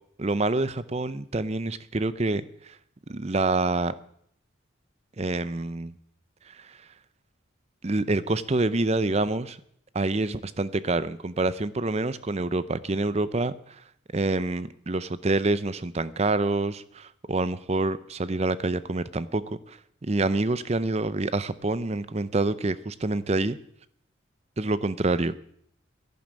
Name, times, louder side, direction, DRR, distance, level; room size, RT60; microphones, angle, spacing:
voice 1, 0.2-2.8 3.1-3.9 5.2-5.9 6.5-6.6 7.8-9.6 9.9-13.5 14.1-19.8 20.0-23.6 24.6-25.3, right 2 dB, 30° right, 15 dB, 0.6 m, -27 dB
11.5 x 11.0 x 8.7 m, 0.68 s
head